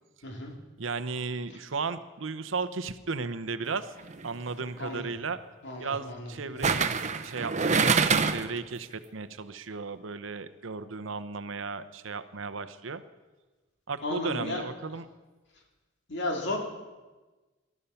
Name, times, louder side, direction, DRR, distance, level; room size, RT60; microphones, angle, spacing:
voice 1, 0.8-3.9 4.2-5.4 5.8-6.9 7.2-13.0 13.9-15.1, right 4 dB, 70° right, 12 dB, 0.8 m, -35 dB
sound 1, 4.0-4.3 6.6-8.6 8.9-9.0, right 5 dB, 35° right, 0.8 m, -25 dB
voice 2, 4.8-5.2 5.6-6.7 14.0-14.6 16.1-16.6, left 2 dB, 60° left, 2 dB, 2.7 m, -34 dB
19.5 x 12.5 x 5.7 m, 1.2 s
head